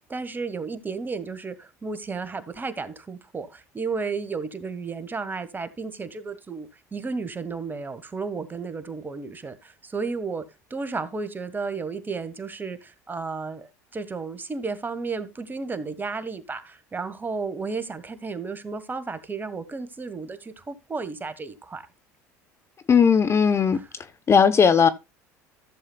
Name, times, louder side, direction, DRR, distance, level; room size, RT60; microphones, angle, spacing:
voice 1, 0.0-10.4 10.7-21.8 23.7-23.9, right 4 dB, 20° right, 1.5 m, -33 dB
voice 2, 22.9-23.8 24.3-24.9, left 6 dB, 30° left, 0.8 m, -17 dB
14.5 x 7.4 x 2.3 m
hypercardioid pair, 75°, 9 cm